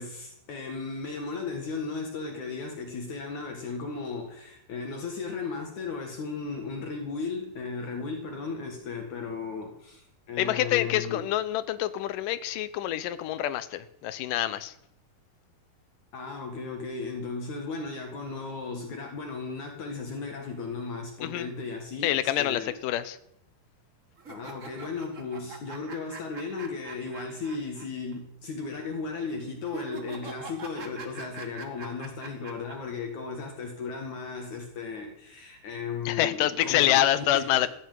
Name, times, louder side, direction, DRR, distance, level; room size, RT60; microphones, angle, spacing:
voice 1, 0.0-11.3 16.1-22.7 24.3-37.7, left 4 dB, 60° left, 3 dB, 3.1 m, -35 dB
voice 2, 10.4-14.7 21.2-21.5 22.0-23.2 36.1-37.7, left 13 dB, 75° left, 14 dB, 2.3 m, -26 dB
sound 1, 24.2-27.9 28.1-28.2 29.6-32.7, right 4 dB, 45° right, 1.0 m, -43 dB
15.5 x 8.3 x 9.3 m, 0.74 s
omnidirectional pair, 4.2 m